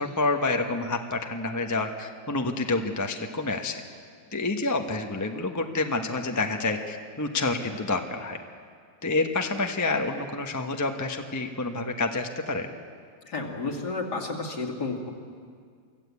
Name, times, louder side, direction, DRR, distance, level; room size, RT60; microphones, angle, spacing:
voice 1, 0.0-3.8 4.3-8.4 9.0-12.7, left 3 dB, 15° left, 4 dB, 0.8 m, -28 dB
voice 2, 13.3-15.1, left 3 dB, 60° left, 1 dB, 2.7 m, -31 dB
24.5 x 14.5 x 8.3 m, 2.1 s
omnidirectional pair, 2.0 m